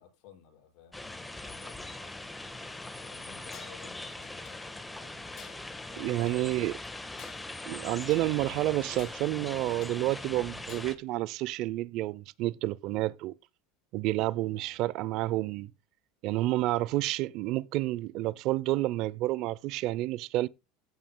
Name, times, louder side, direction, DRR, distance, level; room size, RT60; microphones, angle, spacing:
voice 1, 0.0-2.3 3.0-6.9 9.3-9.9 14.5-14.9, left 9 dB, 60° left, 6.0 m, -56 dB
sound 1, 0.9-11.0, left 2 dB, 5° left, 1.3 m, -41 dB
Tools, 3.5-3.9 4.2-4.9 5.3-6.5 7.0-8.4 8.9-10.1 10.6-11.1, left 11 dB, 40° left, 1.2 m, -53 dB
voice 2, 6.0-6.7 7.7-13.3 13.9-15.7 16.2-20.5, right 17 dB, 55° right, 0.5 m, -30 dB
14.5 x 9.1 x 2.2 m
supercardioid pair, 125°, 0 cm